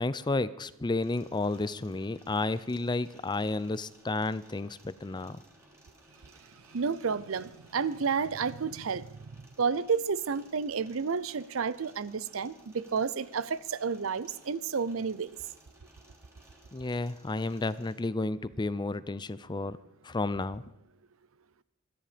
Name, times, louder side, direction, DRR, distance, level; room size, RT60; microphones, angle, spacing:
voice 1, 0.0-5.4 16.7-19.8 20.0-20.6, left 2 dB, 20° left, 16 dB, 0.5 m, -32 dB
sound 1, 1.0-17.9, right 1 dB, 15° right, 3.4 m, -60 dB
voice 2, 6.7-9.1 9.6-15.4, right 5 dB, 70° right, 18 dB, 0.6 m, -31 dB
25.0 x 10.0 x 5.1 m, 0.84 s
head